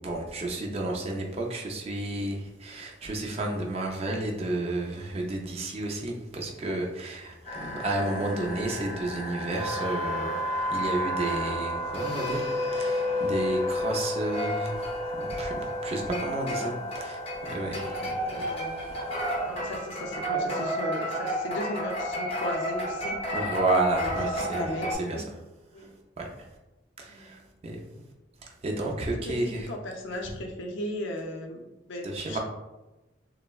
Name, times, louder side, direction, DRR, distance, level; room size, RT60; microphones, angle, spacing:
voice 1, 0.0-18.1 19.1-19.4 23.3-24.6 25.0-25.2 25.8-25.9 26.2-26.3 27.0-28.0 28.4-29.7 32.0-32.4, right 2 dB, 35° right, 0 dB, 0.4 m, -32 dB
sound 1, 7.4-24.9, equal, 30° left, 0.6 m, -31 dB
voice 2, 16.5-16.8 17.7-17.9 18.2-18.8 19.4-23.2 23.9-25.3 25.7-25.9 27.1-27.4 29.2-29.4 29.7-31.6 31.9-32.4, left 1 dB, 75° left, 2 dB, 0.5 m, -36 dB
3.3 x 2.0 x 2.2 m, 1.0 s
head